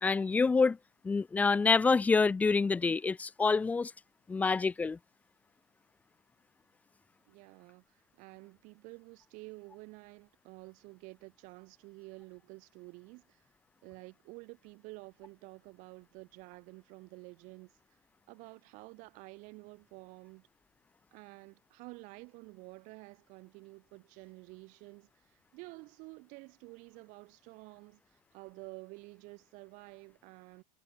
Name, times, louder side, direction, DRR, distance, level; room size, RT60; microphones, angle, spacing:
voice 1, 0.0-0.8 1.0-3.9 4.3-5.0, left 4 dB, 10° left, 0.5 m, -27 dB
voice 2, 7.3-13.5 13.8-17.7 18.3-20.5 21.1-30.6, right 27 dB, 45° right, 3.0 m, -51 dB
supercardioid pair, 155°, 18 cm